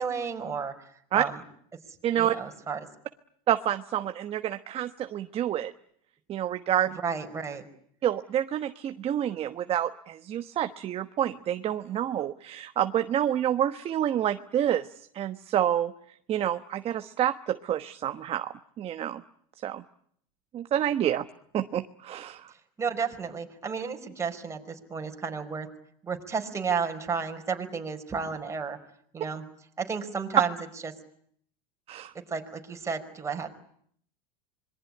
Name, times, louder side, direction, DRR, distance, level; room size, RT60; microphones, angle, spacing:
voice 1, 0.0-1.4 2.2-2.8 7.0-7.6 22.8-25.7 26.0-28.8 29.1-29.4 29.8-30.5 30.8-30.9 32.3-33.5, right 5 dB, 15° right, 4 dB, 5.0 m, -32 dB
voice 2, 2.0-2.3 3.5-5.7 6.3-7.0 8.0-19.2 19.6-19.8 20.5-21.2 21.5-22.5 31.9-32.1, right 11 dB, 30° right, 9 dB, 1.2 m, -28 dB
26.0 x 22.5 x 9.8 m, 0.66 s
supercardioid pair, 125°, 19 cm